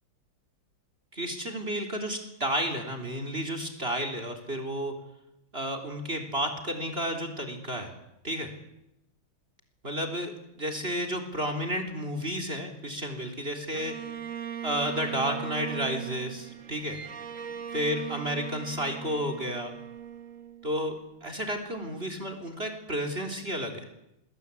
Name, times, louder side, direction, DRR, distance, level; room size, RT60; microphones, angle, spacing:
voice 1, 1.1-4.9 5.5-7.9 8.2-8.5 9.8-13.9 14.6-17.0 17.7-19.7 20.6-23.9, equal, 25° right, 7 dB, 3.7 m, -32 dB
Bowed string instrument, 13.7-21.0, right 9 dB, 45° right, 1.5 m, -39 dB
28.0 x 22.0 x 8.4 m, 0.85 s
omnidirectional pair, 2.2 m